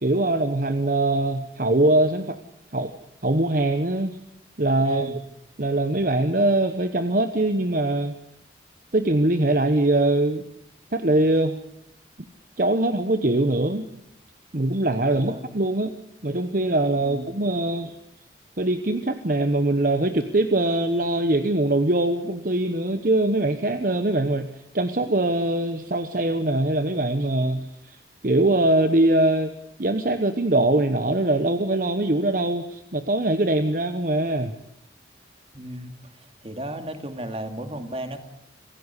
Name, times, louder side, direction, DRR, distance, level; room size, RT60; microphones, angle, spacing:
voice 1, 0.0-2.4 2.7-2.9 3.2-4.2 4.6-5.2 5.6-8.1 8.9-10.4 10.9-11.6 12.6-13.8 14.5-15.9 16.2-18.0 18.6-24.5 24.7-28.0 28.2-29.5 29.8-34.5, right 2 dB, 45° right, 10 dB, 1.1 m, -22 dB
voice 2, 4.8-5.2 15.1-15.4 17.0-17.3 35.5-35.9 36.4-38.2, right 1 dB, 30° right, 7 dB, 2.4 m, -34 dB
26.5 x 16.0 x 8.3 m, 0.81 s
head